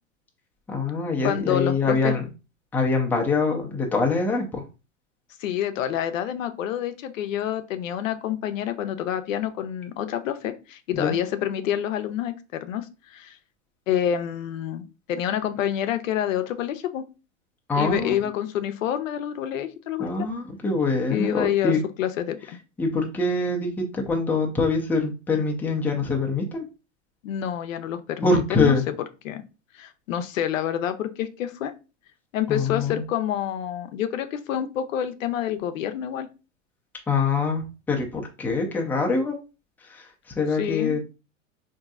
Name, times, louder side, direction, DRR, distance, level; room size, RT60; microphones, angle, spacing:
voice 1, 0.7-2.3 2.7-4.6 10.9-11.1 17.7-18.2 20.0-21.8 22.8-26.6 28.2-28.8 32.5-33.0 37.1-39.4 39.9-40.0 40.4-41.0, left 3 dB, 5° left, 0 dB, 0.4 m, -24 dB
voice 2, 1.2-2.1 5.4-13.4 13.9-17.0 17.8-20.3 21.1-22.6 27.2-29.0 29.2-29.4 29.7-31.7 32.3-36.3 40.6-41.0, left 10 dB, 85° left, 9 dB, 0.6 m, -28 dB
3.8 x 2.7 x 2.3 m, 0.30 s
hypercardioid pair, 115°, 38 cm